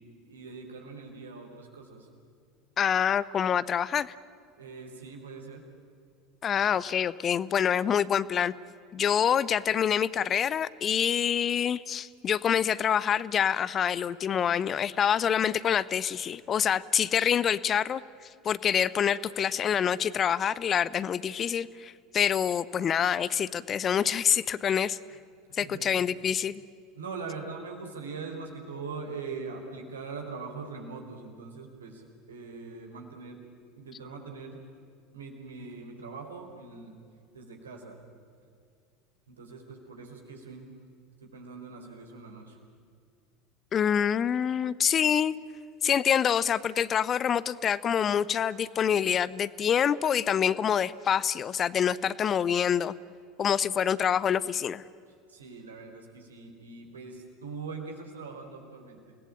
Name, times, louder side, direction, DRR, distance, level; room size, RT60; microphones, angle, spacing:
voice 1, 0.0-2.1 4.6-5.6 25.5-25.9 26.9-33.4 33.8-34.6 35.1-37.0 37.3-38.0 39.3-40.7 41.2-42.6 55.3-59.2, right 4 dB, 75° right, 2 dB, 4.2 m, -42 dB
voice 2, 2.8-4.1 6.4-8.5 8.9-18.0 18.4-25.0 25.5-26.6 43.7-45.3 45.8-52.9 53.4-54.8, left 8 dB, 35° left, 19 dB, 0.7 m, -26 dB
29.0 x 19.0 x 8.8 m, 2.3 s
figure-of-eight pair, 70°, 0 cm